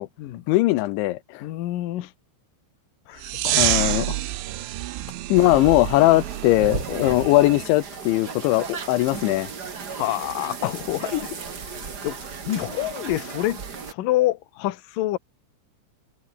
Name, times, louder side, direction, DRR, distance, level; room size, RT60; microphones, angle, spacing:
voice 1, 0.5-1.4 3.4-4.2 5.3-9.5, left 18 dB, 85° left, 3.2 m, -20 dB
voice 2, 1.4-2.1 3.1-3.6 7.0-7.1 9.9-15.2, left 15 dB, 65° left, 2.4 m, -28 dB
sound 1, 3.2-7.6, right 15 dB, 80° right, 3.7 m, -28 dB
sound 2, 5.3-13.9, right 5 dB, 45° right, 1.3 m, -35 dB
omnidirectional pair, 5.3 m